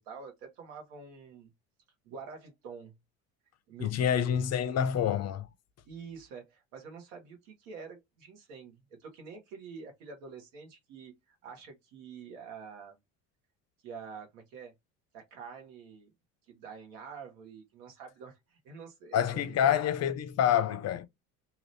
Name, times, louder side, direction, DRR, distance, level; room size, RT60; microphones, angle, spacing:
voice 1, 0.0-1.5 2.0-2.9 3.7-4.3 5.8-13.0 13.8-14.7 15.1-16.1 16.5-19.9, right 5 dB, 80° right, 1.4 m, -47 dB
voice 2, 3.8-5.5 19.1-21.1, left 9 dB, 40° left, 0.5 m, -27 dB
2.8 x 2.6 x 3.2 m
hypercardioid pair, 70°, 39 cm